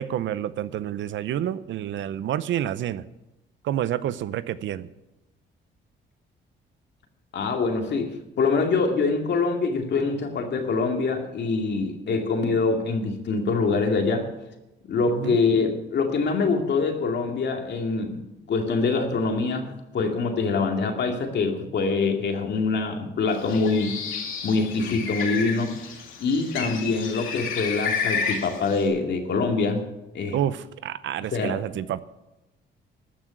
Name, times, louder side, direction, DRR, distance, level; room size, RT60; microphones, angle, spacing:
voice 1, 0.0-3.0 3.6-4.9 15.1-15.4 30.3-32.0, right 11 dB, 75° right, 16 dB, 0.7 m, -28 dB
voice 2, 7.3-14.3 14.9-19.7 19.9-23.9 24.4-25.7 26.2-29.8 30.1-30.4 31.3-31.5, left 4 dB, 60° left, 3 dB, 2.3 m, -24 dB
Bird, 23.3-28.9, left 6 dB, 85° left, 2.5 m, -31 dB
14.0 x 6.2 x 9.1 m, 0.97 s
cardioid pair, 90°, 20 cm